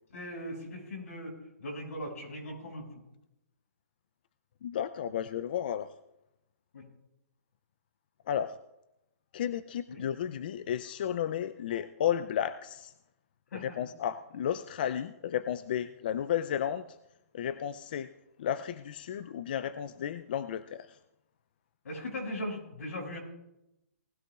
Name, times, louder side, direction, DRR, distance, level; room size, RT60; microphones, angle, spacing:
voice 1, 0.1-1.3 1.6-3.0 6.7-6.9 9.9-10.0 13.5-13.9 21.8-23.2, left 1 dB, 80° left, 0 dB, 5.6 m, -39 dB
voice 2, 4.6-5.9 8.3-8.6 9.3-12.9 13.5-16.8 17.3-18.1 18.4-21.0, left 9 dB, 40° left, 13 dB, 0.4 m, -33 dB
19.5 x 14.0 x 2.4 m, 0.88 s
hypercardioid pair, 170°, 8 cm